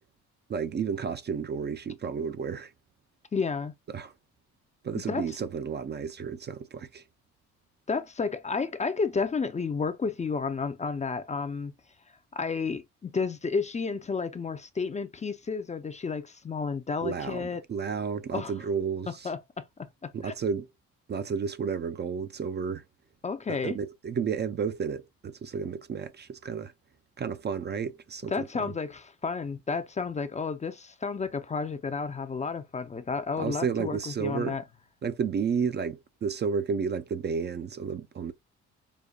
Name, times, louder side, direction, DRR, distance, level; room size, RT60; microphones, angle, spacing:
voice 1, 0.5-2.7 3.9-4.1 4.8-7.0 17.0-19.3 20.1-20.7 21.1-22.8 23.5-26.7 27.2-28.4 33.4-34.6 35.0-38.3, right 6 dB, 35° right, 0.4 m, -32 dB
voice 2, 3.3-3.7 5.1-5.4 7.9-11.7 12.3-17.6 18.3-18.5 19.2-20.3 23.2-23.8 28.3-34.6, left 4 dB, 25° left, 0.4 m, -31 dB
5.1 x 2.2 x 2.2 m
cardioid pair, 90°, 30 cm